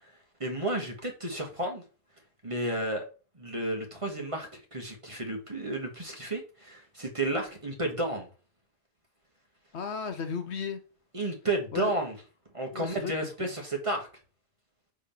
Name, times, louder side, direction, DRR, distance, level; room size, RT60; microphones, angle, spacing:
voice 1, 0.4-1.8 2.4-3.1 3.4-8.3 11.1-12.2 12.5-14.1, right 2 dB, 25° right, 1.5 m, -32 dB
voice 2, 9.7-10.8 11.7-12.0 12.7-13.5, left 6 dB, 65° left, 1.0 m, -35 dB
5.3 x 3.7 x 5.8 m
omnidirectional pair, 1.3 m